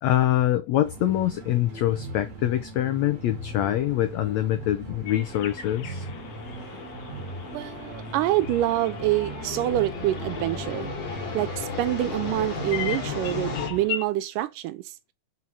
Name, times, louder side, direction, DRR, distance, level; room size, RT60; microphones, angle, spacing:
voice 1, 0.0-6.1, left 13 dB, 90° left, 1.5 m, -24 dB
sound 1, 0.8-13.8, right 2 dB, 50° right, 0.9 m, -39 dB
sound 2, 3.1-13.7, left 5 dB, 40° left, 2.8 m, -37 dB
sound 3, 5.1-14.1, left 10 dB, 65° left, 2.2 m, -40 dB
voice 2, 7.5-10.9 11.3-14.9, right 15 dB, 80° right, 2.1 m, -26 dB
6.2 x 4.5 x 5.5 m
omnidirectional pair, 4.0 m